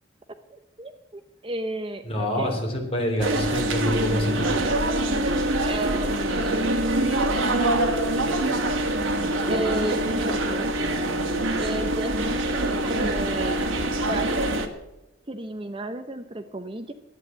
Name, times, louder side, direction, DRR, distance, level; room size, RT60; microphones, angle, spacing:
voice 1, 0.5-2.6 5.6-6.8 9.5-11.0 11.6-13.6 14.1-14.5 15.3-16.9, right 1 dB, 25° right, 9 dB, 0.6 m, -33 dB
voice 2, 2.0-4.7, equal, 30° left, 0 dB, 3.5 m, -26 dB
sound 1, 3.2-14.7, right 1 dB, 90° right, 1.5 m, -24 dB
11.0 x 9.4 x 7.7 m, 0.96 s
head